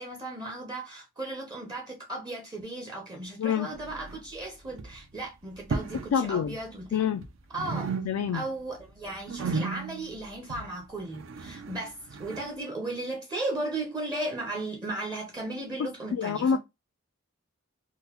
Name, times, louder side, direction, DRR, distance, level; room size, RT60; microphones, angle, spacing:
voice 1, 0.0-7.0 7.5-7.9 8.3-16.6, right 2 dB, 20° right, 0.6 m, -36 dB
sound 1, 3.7-4.4 4.7-5.0 5.6-6.2 6.4-7.3 7.5-8.5 8.8-12.5, right 4 dB, 60° right, 0.4 m, -35 dB
voice 2, 6.1-6.6 6.9-7.3 8.1-8.4 15.8-16.6, left 7 dB, 80° left, 0.3 m, -27 dB
3.7 x 2.1 x 2.8 m
head